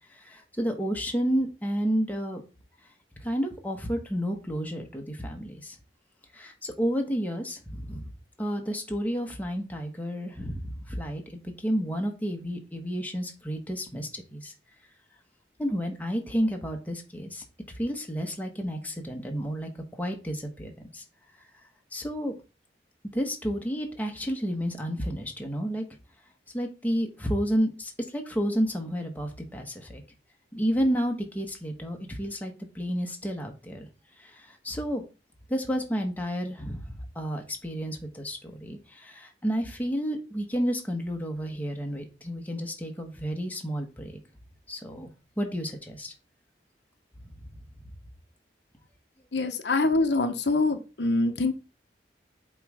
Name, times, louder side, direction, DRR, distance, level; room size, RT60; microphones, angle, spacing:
voice 1, 0.1-2.4 3.2-5.8 6.3-14.5 15.6-19.7 20.0-21.0 21.4-21.5 21.9-22.3 23.1-25.8 26.5-30.0 30.5-33.9 34.2-35.0 35.5-36.9 37.1-44.2 44.7-45.1 45.4-46.1 47.8-47.9, equal, 10° left, 1.2 m, -31 dB
voice 2, 49.3-51.5, left 2 dB, 75° left, 0.9 m, -25 dB
7.7 x 3.2 x 4.9 m
head